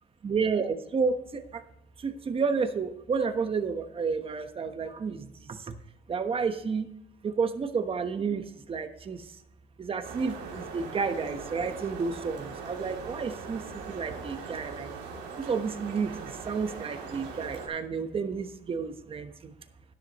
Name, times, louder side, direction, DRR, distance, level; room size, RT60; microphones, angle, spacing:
voice 1, 0.2-1.4 2.0-5.7 6.1-6.9 7.2-9.2 9.8-14.9 15.5-19.3, right 5 dB, 35° right, 8 dB, 1.1 m, -31 dB
sound 1, 10.0-17.7, right 5 dB, 90° right, 2.9 m, -40 dB
12.5 x 10.5 x 3.1 m, 0.85 s
cardioid pair, 110°, 17 cm